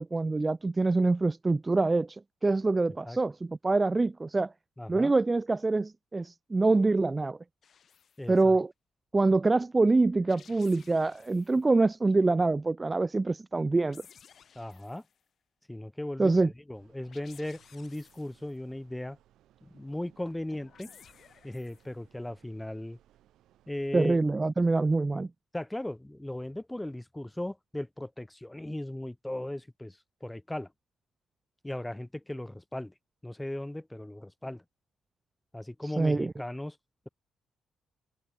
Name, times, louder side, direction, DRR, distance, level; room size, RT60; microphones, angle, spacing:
voice 1, 0.0-4.5 4.9-7.4 8.3-8.7 9.1-14.0 16.2-16.5 23.9-25.3 36.0-36.3, right 3 dB, 20° right, 0.5 m, -25 dB
voice 2, 4.8-5.1 8.2-8.6 14.6-15.0 15.7-19.2 19.6-20.9 21.4-23.0 23.7-24.2 25.5-30.7 31.6-32.9 33.2-34.6 35.5-36.8, left 1 dB, 10° left, 3.6 m, -37 dB
sound 1, 7.6-8.3 10.1-11.7 13.5-15.2 16.9-18.6 20.4-22.0, left 7 dB, 55° left, 4.3 m, -57 dB
sound 2, 16.7-24.0, right 12 dB, 80° right, 5.8 m, -64 dB
cardioid pair, 90°, 0 cm